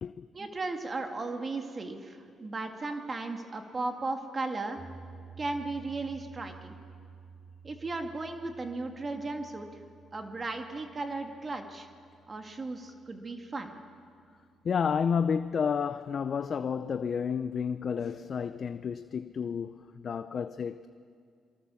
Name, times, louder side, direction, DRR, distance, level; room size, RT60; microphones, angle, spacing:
voice 1, 0.3-4.8 5.4-6.8 7.6-9.7 10.1-11.9 12.3-13.7, right 3 dB, 30° right, 2.1 m, -36 dB
sound 1, 4.8-15.0, right 5 dB, 50° right, 3.1 m, -53 dB
voice 2, 14.6-20.9, left 6 dB, 50° left, 0.6 m, -31 dB
27.5 x 23.0 x 7.1 m
cardioid pair, 90°, 0 cm